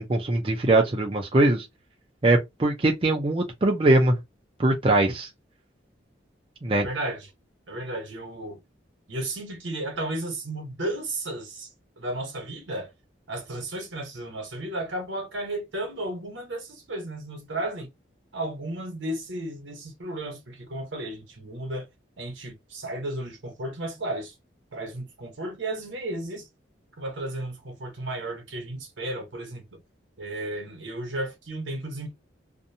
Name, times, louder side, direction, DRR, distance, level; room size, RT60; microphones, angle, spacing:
voice 1, 0.0-1.7 2.2-4.2 4.6-5.3 6.6-6.9, right 2 dB, 30° right, 0.4 m, -21 dB
voice 2, 6.7-7.3 7.7-8.6 9.1-12.9 13.3-17.9 18.3-21.9 22.2-24.3 24.7-26.5 27.0-29.8 30.2-32.1, right 1 dB, 80° right, 1.0 m, -34 dB
2.6 x 2.2 x 2.7 m
head